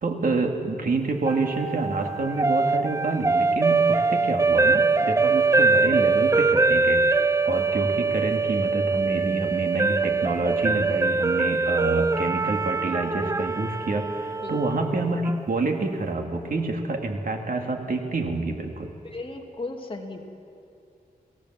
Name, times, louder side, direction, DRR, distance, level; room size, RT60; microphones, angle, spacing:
voice 1, 0.0-7.0 7.5-18.9, right 3 dB, 65° right, 3 dB, 2.4 m, -27 dB
sound 1, 1.3-15.4, right 3 dB, 20° right, 0.5 m, -23 dB
voice 2, 19.0-20.3, left 2 dB, 35° left, 2 dB, 2.4 m, -36 dB
29.5 x 17.5 x 7.6 m, 2.6 s
wide cardioid pair, 125°, 16 cm